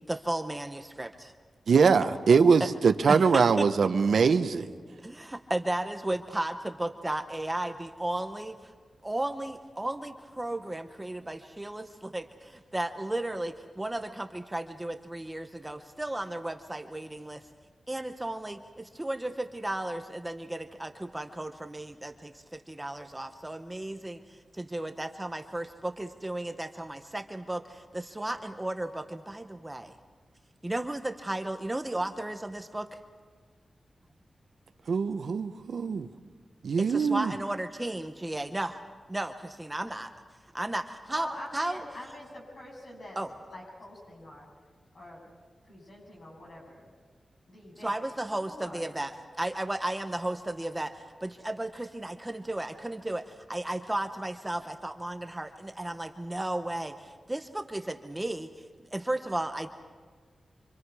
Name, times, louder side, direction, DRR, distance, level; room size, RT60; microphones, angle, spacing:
voice 1, 0.1-1.1 2.6-2.7 3.1-3.7 5.0-5.1 5.5-6.5 6.8-8.5 9.0-11.8 12.1-12.2 12.7-13.5 13.8-17.4 17.9-18.6 19.0-19.3 19.6-20.9 21.1-22.1 22.8-24.2 24.7-27.6 28.2-29.9 30.6-32.8 36.9-38.7 39.1-39.3 39.6-40.1 40.5-40.8 41.1-41.3 41.5-41.8 43.2-43.3 47.8-49.1 49.4-50.9 51.2-51.7 51.9-53.2 53.5-55.5 55.8-56.9 57.3-57.4 57.7-58.5 58.9-59.7, right 1 dB, 15° right, 0.8 m, -33 dB
voice 2, 1.7-4.7 34.9-36.1 36.6-37.3, right 5 dB, 80° right, 0.9 m, -22 dB
voice 3, 41.1-43.2 43.5-44.5 44.9-45.2 45.6-46.9 47.5-48.0 48.3-48.9, left 1 dB, 60° left, 7.9 m, -45 dB
26.5 x 26.0 x 4.8 m
wide cardioid pair, 165°, 0 cm